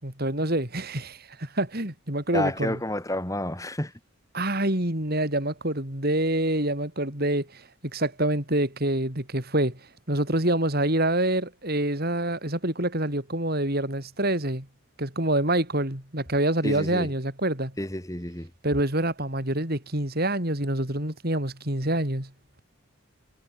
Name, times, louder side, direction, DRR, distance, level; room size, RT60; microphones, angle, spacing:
voice 1, 0.0-2.8 4.3-9.8 10.1-14.7 15.0-17.7 18.6-22.3, right 1 dB, 45° right, 4.3 m, -26 dB
voice 2, 2.3-3.9 16.6-17.1 17.8-18.5, left 1 dB, 15° left, 4.1 m, -30 dB
head